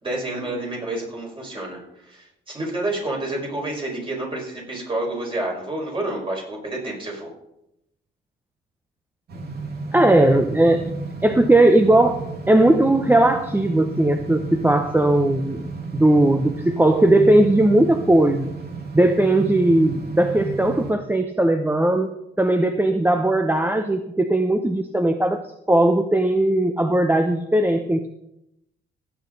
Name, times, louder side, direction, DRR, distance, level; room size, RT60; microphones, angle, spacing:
voice 1, 0.0-7.3, right 2 dB, 25° right, -2 dB, 5.2 m, -29 dB
sound 1, 9.3-20.9, right 3 dB, 55° right, 2.2 m, -33 dB
voice 2, 9.9-10.9 11.2-15.6 15.9-18.5 18.9-25.4 25.7-28.1, right 1 dB, 10° right, 7 dB, 0.8 m, -18 dB
17.0 x 8.4 x 4.0 m, 0.83 s
cardioid pair, 90°, 20 cm